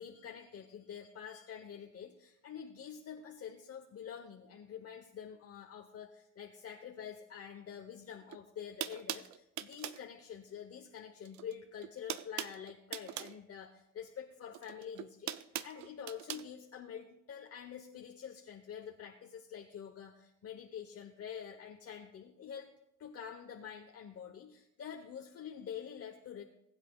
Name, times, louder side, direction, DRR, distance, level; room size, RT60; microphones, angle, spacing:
voice 1, 0.0-22.7 23.0-26.4, left 8 dB, 55° left, 3 dB, 1.0 m, -47 dB
sound 1, 8.3-8.4 8.8-10.0 11.2-11.5 11.8-13.4 14.5-16.4, right 11 dB, 70° right, 0.6 m, -41 dB
20.5 x 8.3 x 2.3 m, 0.82 s
cardioid pair, 90°, 30 cm